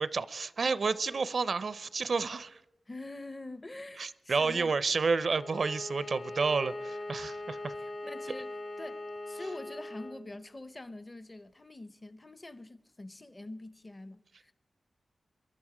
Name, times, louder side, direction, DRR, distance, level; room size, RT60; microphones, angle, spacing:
voice 1, 0.0-2.6 4.0-7.7, right 4 dB, 65° right, 0.4 m, -30 dB
voice 2, 2.9-4.7 7.8-14.5, left 2 dB, 25° left, 0.7 m, -45 dB
Bowed string instrument, 5.3-10.2, left 1 dB, 80° left, 2.8 m, -41 dB
22.5 x 12.0 x 4.8 m
wide cardioid pair, 85°, 0 cm